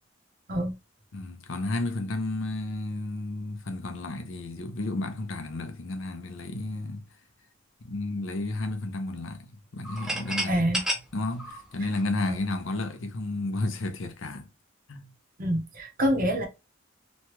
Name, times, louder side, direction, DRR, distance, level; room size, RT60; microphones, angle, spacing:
voice 1, 1.1-7.0 7.8-10.7 11.1-14.5 14.9-15.1, left 2 dB, 65° left, 0.6 m, -32 dB
sound 1, 9.8-12.6, right 1 dB, 5° right, 0.5 m, -32 dB
voice 2, 10.5-10.8 15.4-16.5, equal, 40° right, 0.7 m, -26 dB
3.1 x 2.2 x 2.9 m
head